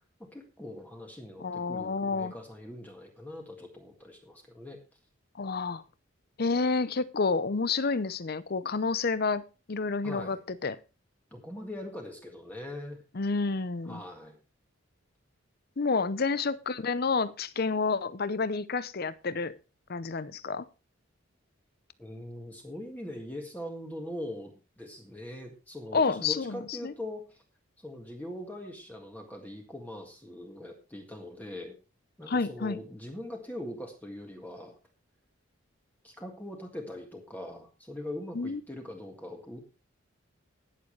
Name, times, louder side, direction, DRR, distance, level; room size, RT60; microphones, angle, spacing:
voice 1, 0.2-4.8 10.0-10.4 11.3-13.0 13.8-14.4 22.0-27.4 27.8-31.8 32.2-34.7 36.0-39.6, left 1 dB, 10° left, 1.8 m, -41 dB
voice 2, 1.4-2.3 5.4-5.8 6.4-9.4 9.7-10.8 13.1-14.0 15.8-19.6 19.9-20.7 25.9-26.9 32.3-32.8 38.4-38.6, left 4 dB, 50° left, 0.6 m, -29 dB
20.5 x 7.2 x 3.2 m
head